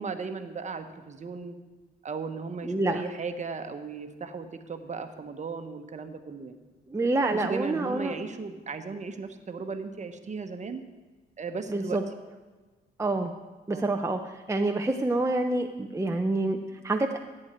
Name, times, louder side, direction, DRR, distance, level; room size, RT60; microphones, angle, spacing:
voice 1, 0.0-1.6 2.0-6.6 7.2-10.8 11.4-12.0 13.7-13.9, right 4 dB, 35° right, 7 dB, 1.2 m, -36 dB
voice 2, 2.6-3.0 6.9-8.1 11.7-12.0 13.0-13.3 13.7-17.2, right 2 dB, 15° right, 3 dB, 0.7 m, -27 dB
16.0 x 8.8 x 4.4 m, 1.3 s
cardioid pair, 90°, 20 cm